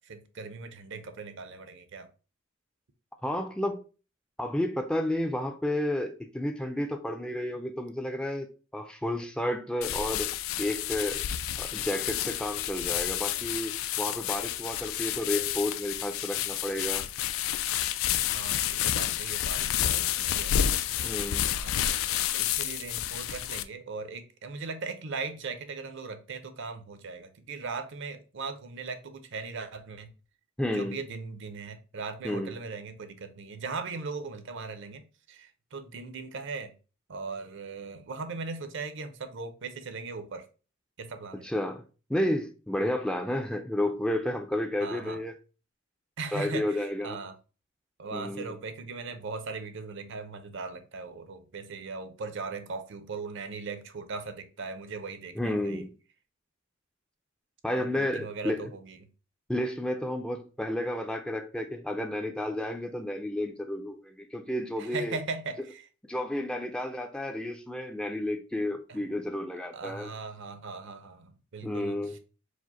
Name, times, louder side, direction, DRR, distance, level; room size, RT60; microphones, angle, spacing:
voice 1, 0.0-2.1 18.3-20.7 21.5-21.8 22.3-30.1 30.7-36.7 37.1-40.4 41.0-41.5 44.8-45.2 46.2-47.4 48.0-55.9 57.7-59.0 64.8-65.9 68.9-69.0 69.7-72.2, right 4 dB, 65° right, 0.6 m, -39 dB
voice 2, 3.2-3.8 4.4-8.5 8.7-11.3 11.6-17.1 21.0-21.5 30.6-31.0 32.2-32.6 41.4-41.8 42.1-45.3 46.3-47.2 48.1-48.6 55.4-55.9 57.6-58.7 59.5-65.2 66.1-70.1 71.6-72.2, left 1 dB, 5° left, 0.4 m, -31 dB
sound 1, 9.8-23.6, left 11 dB, 80° left, 0.3 m, -30 dB
4.9 x 2.1 x 4.0 m
head